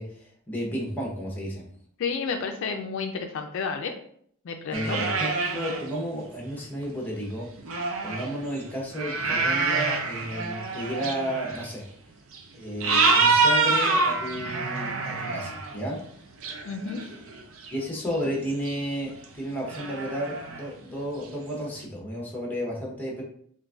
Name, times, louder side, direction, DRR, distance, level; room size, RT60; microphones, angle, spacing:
voice 1, 0.0-1.7 4.7-7.7 8.0-11.8 12.5-16.0 17.7-23.2, equal, 10° left, -2 dB, 0.8 m, -32 dB
voice 2, 2.0-3.9 4.4-5.0 16.6-17.0, left 5 dB, 65° left, 4 dB, 0.4 m, -31 dB
sound 1, 4.7-5.9 6.6-6.7 7.6-11.7 12.3-12.4 12.8-15.8 16.4-17.8 18.3-18.4 18.7-18.8 19.2-19.3 19.6-20.7 21.8-21.9, right 3 dB, 75° right, 0.5 m, -26 dB
3.8 x 2.5 x 2.3 m, 0.63 s
head